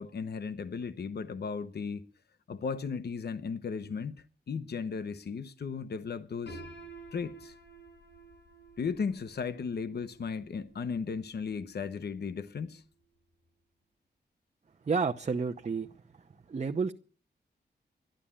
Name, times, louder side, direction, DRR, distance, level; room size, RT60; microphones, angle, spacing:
voice 1, 0.0-2.1 2.5-6.6 7.1-7.5 8.8-12.8, left 5 dB, 70° left, 1.0 m, -36 dB
Piano, 6.5-12.3, right 2 dB, 90° left, 7.7 m, -51 dB
voice 2, 14.8-15.9 16.5-16.9, right 5 dB, 40° right, 0.8 m, -30 dB
12.5 x 11.5 x 8.7 m
wide cardioid pair, 100°, 17 cm